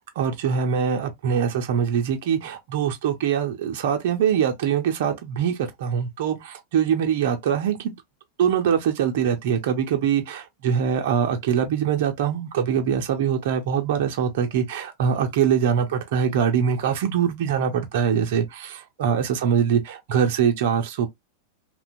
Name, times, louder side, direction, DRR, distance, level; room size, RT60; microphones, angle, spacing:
voice 1, 0.2-8.0 8.4-21.1, right 8 dB, 55° right, 0.5 m, -23 dB
2.8 x 2.1 x 2.5 m
figure-of-eight pair, 90°, 0 cm